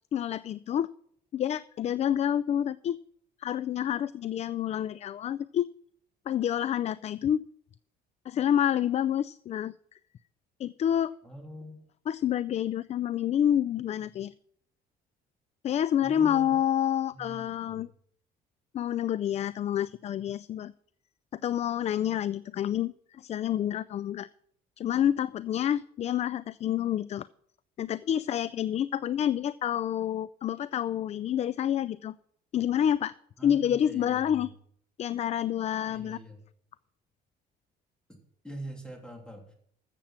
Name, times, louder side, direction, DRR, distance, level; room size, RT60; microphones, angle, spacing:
voice 1, 0.1-0.9 1.3-3.0 3.4-5.7 6.3-7.5 8.3-9.7 10.6-11.1 12.1-14.3 15.6-17.9 18.7-20.7 21.4-24.3 24.8-27.3 27.8-32.1 32.5-33.1 33.4-34.5 35.0-36.2, left 10 dB, 40° left, 18 dB, 0.4 m, -28 dB
voice 2, 11.2-11.8 16.0-16.5 17.1-17.8 33.4-34.5 35.9-36.4 38.1-38.2 38.4-39.5, equal, 5° left, 2 dB, 3.1 m, -44 dB
14.5 x 7.5 x 5.8 m, 0.65 s
cardioid pair, 110°, 17 cm